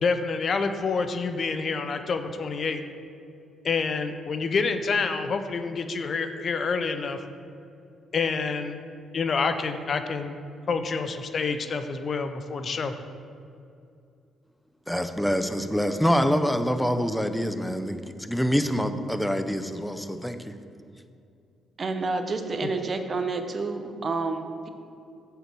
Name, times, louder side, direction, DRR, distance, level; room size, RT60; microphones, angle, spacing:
voice 1, 0.0-2.8 3.6-7.2 8.1-8.8 9.1-10.4 10.7-12.9, left 4 dB, 50° left, 8 dB, 0.6 m, -27 dB
voice 2, 14.9-20.6, equal, 5° left, 8 dB, 0.6 m, -26 dB
voice 3, 21.8-24.7, right 3 dB, 40° right, 7 dB, 0.7 m, -29 dB
8.1 x 6.8 x 4.6 m, 2.5 s
cardioid pair, 90°, 0 cm